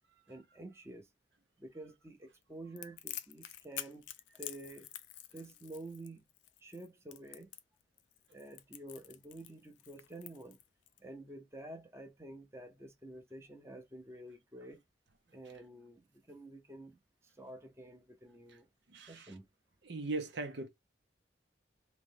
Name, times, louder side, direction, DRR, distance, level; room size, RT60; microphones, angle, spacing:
voice 1, 0.3-1.1 1.6-4.1 4.3-4.9 5.3-6.2 6.6-7.5 8.3-10.6 11.0-14.8 15.3-17.0 17.4-18.7 19.1-19.5, right 1 dB, 15° right, 0.8 m, -49 dB
Crackle, 2.8-11.0, left 13 dB, 85° left, 0.5 m, -47 dB
voice 2, 18.9-19.3 19.8-20.7, right 3 dB, 70° right, 0.8 m, -39 dB
3.2 x 3.1 x 3.6 m
head